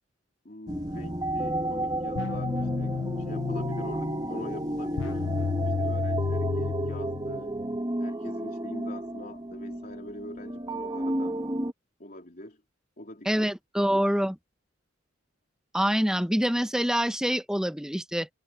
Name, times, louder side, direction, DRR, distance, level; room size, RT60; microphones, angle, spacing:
voice 1, 0.4-5.2 5.7-7.6 8.0-11.3 12.0-12.6 13.0-13.5 13.9-14.0, left 1 dB, 45° left, 3.7 m, -43 dB
sound 1, 0.7-11.7, right 1 dB, 20° right, 2.4 m, -32 dB
sound 2, 2.2-7.8, left 5 dB, 75° left, 0.5 m, -32 dB
voice 2, 13.3-14.3 15.7-18.3, equal, 5° right, 0.9 m, -26 dB
head